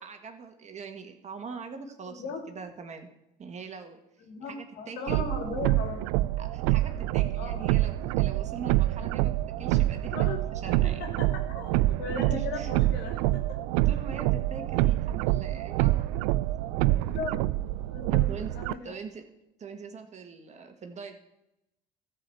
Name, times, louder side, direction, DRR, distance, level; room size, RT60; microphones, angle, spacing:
voice 1, 0.0-3.1 3.4-4.0 4.5-5.2 6.4-11.0 12.2-12.7 13.8-16.0 18.3-18.5 18.8-19.2 19.6-21.2, right 5 dB, 40° right, 6 dB, 1.7 m, -42 dB
voice 2, 2.0-2.5 4.2-6.0 7.4-7.7 10.1-10.5 10.8-13.6 16.9-17.4 17.9-18.8, left 4 dB, 70° left, 3 dB, 2.7 m, -37 dB
sound 1, 5.1-18.7, right 16 dB, 85° right, 0.4 m, -26 dB
13.0 x 5.0 x 7.7 m, 0.89 s
supercardioid pair, 90°, 18 cm